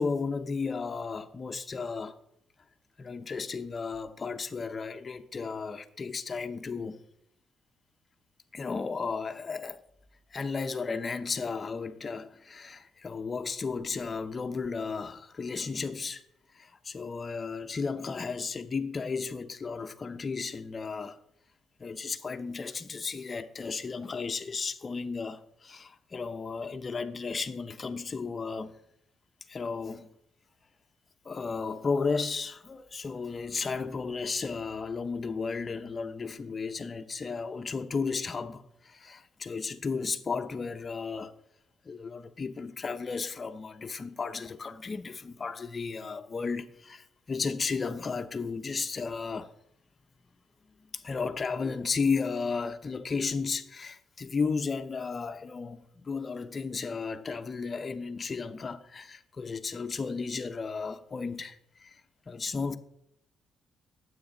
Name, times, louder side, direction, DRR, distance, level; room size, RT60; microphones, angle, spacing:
voice 1, 0.0-2.1 3.0-7.0 8.5-9.8 10.3-16.2 16.5-21.2 21.8-28.7 29.5-30.1 31.2-41.3 41.9-49.5 50.8-62.0 62.3-62.8, left 4 dB, 35° left, 0.7 m, -34 dB
9.4 x 8.0 x 3.8 m
cardioid pair, 90°, 0 cm